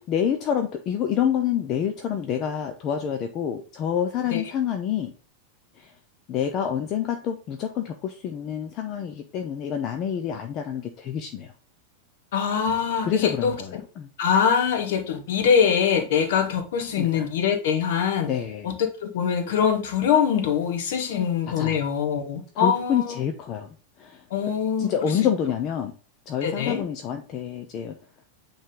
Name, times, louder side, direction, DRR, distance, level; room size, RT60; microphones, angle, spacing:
voice 1, 0.1-5.1 5.8-5.9 6.3-11.5 13.0-14.1 16.9-17.3 18.3-18.7 21.0-21.3 21.6-21.8 22.5-24.2 24.8-25.9 26.3-27.9, left 8 dB, 35° left, 6 dB, 0.7 m, -27 dB
voice 2, 12.3-13.8 14.2-18.3 18.6-18.7 19.0-23.2 24.3-25.2 26.4-26.8, left 7 dB, 55° left, 7 dB, 1.2 m, -23 dB
8.7 x 3.4 x 3.8 m, 0.37 s
figure-of-eight pair, 90°, 0 cm